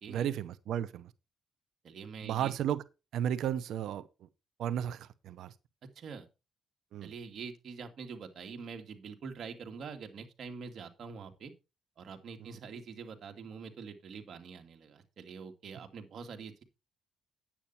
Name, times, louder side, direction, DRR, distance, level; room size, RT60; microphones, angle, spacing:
voice 1, 0.1-1.1 2.2-2.8 3.1-4.0 4.6-5.5 6.9-7.1, right 10 dB, 75° right, 0.7 m, -33 dB
voice 2, 1.8-2.5 5.9-6.3 7.0-11.5 12.0-16.6, right 5 dB, 60° right, 2.4 m, -45 dB
10.0 x 8.7 x 4.3 m
cardioid pair, 90°, 0 cm